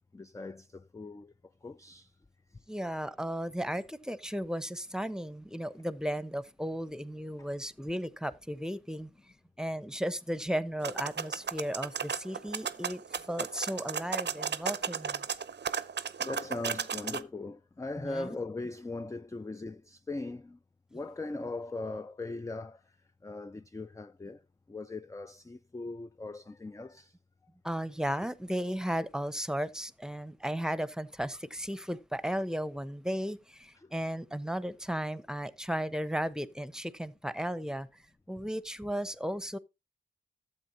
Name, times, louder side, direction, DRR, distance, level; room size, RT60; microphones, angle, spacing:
voice 1, 0.1-1.3 1.6-2.1 7.4-7.5 16.2-20.6 20.9-22.9 23.2-24.4 24.7-27.1 33.8-33.9, left 2 dB, 15° left, 0.4 m, -39 dB
voice 2, 2.7-9.1 9.6-15.2 18.0-18.4 27.6-38.0 38.3-39.6, equal, 5° right, 0.8 m, -35 dB
sound 1, 10.8-17.2, right 6 dB, 65° right, 0.7 m, -35 dB
12.5 x 7.7 x 2.7 m
cardioid pair, 50°, 20 cm